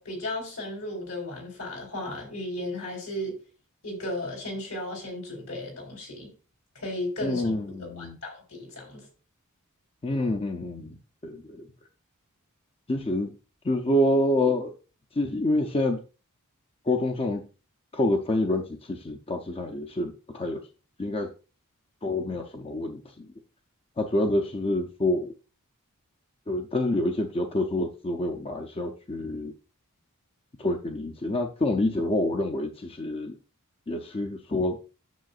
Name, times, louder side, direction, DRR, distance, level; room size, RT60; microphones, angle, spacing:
voice 1, 0.0-3.4 3.8-6.3 6.8-7.5 7.8-9.1, left 1 dB, 70° left, 3.9 m, -35 dB
voice 2, 7.2-8.2 10.0-11.7 12.9-13.3 13.6-14.7 15.1-16.0 16.8-17.4 17.9-20.6 21.0-21.3 22.0-23.3 24.0-25.3 26.5-29.5 30.6-33.4 33.9-34.8, left 1 dB, 25° left, 0.6 m, -27 dB
9.2 x 6.8 x 2.4 m
head